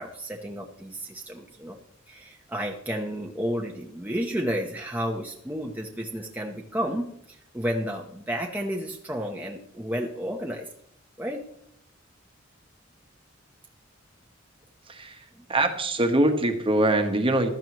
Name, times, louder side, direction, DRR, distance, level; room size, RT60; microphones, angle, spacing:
voice 1, 0.0-1.8 2.1-10.7 11.2-11.5 15.3-15.4, equal, 10° right, 0 dB, 0.9 m, -32 dB
voice 2, 14.9-17.5, right 1 dB, 25° right, 6 dB, 1.3 m, -23 dB
15.5 x 12.0 x 3.1 m, 0.71 s
head